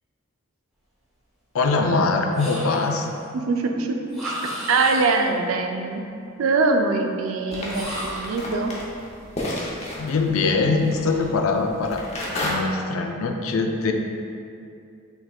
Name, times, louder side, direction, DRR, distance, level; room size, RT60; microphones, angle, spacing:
voice 1, 1.5-3.1 9.6-12.0 12.4-13.9, left 3 dB, 85° left, 4 dB, 0.4 m, -23 dB
sound 1, 2.3-3.1 4.1-5.3 7.7-8.4, right 1 dB, ahead, 1.2 m, -33 dB
voice 2, 3.3-4.3 4.7-6.0 6.4-8.7, right 3 dB, 85° right, 4 dB, 0.4 m, -23 dB
sound 2, 7.5-12.5, left 1 dB, 35° left, 0.7 m, -33 dB
5.9 x 3.6 x 2.3 m, 2.5 s
head